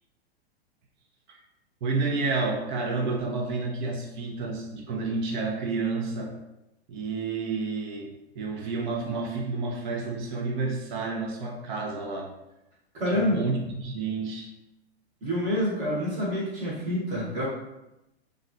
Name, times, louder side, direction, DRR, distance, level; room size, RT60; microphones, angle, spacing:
voice 1, 1.8-6.4 6.9-12.3 13.1-14.5, right 3 dB, 50° right, 0 dB, 0.7 m, -30 dB
voice 2, 12.9-13.5 15.2-17.5, equal, 20° right, -7 dB, 1.0 m, -27 dB
3.1 x 2.4 x 2.6 m, 0.92 s
hypercardioid pair, 155°, 32 cm